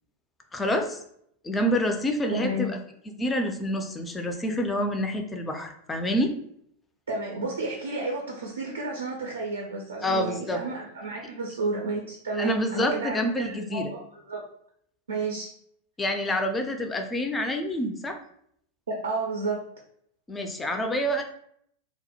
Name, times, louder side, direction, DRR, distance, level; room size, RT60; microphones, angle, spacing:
voice 1, 0.5-1.0 1.4-2.8 3.2-6.3 10.0-10.6 12.4-13.9 16.0-18.2 20.3-21.2, equal, 15° left, 5 dB, 0.3 m, -27 dB
voice 2, 2.3-2.7 7.1-14.0 14.3-14.4 15.1-15.5 18.9-19.6, right 2 dB, 70° right, -1 dB, 0.4 m, -31 dB
2.2 x 2.0 x 2.7 m, 0.68 s
figure-of-eight pair, 90°, 0 cm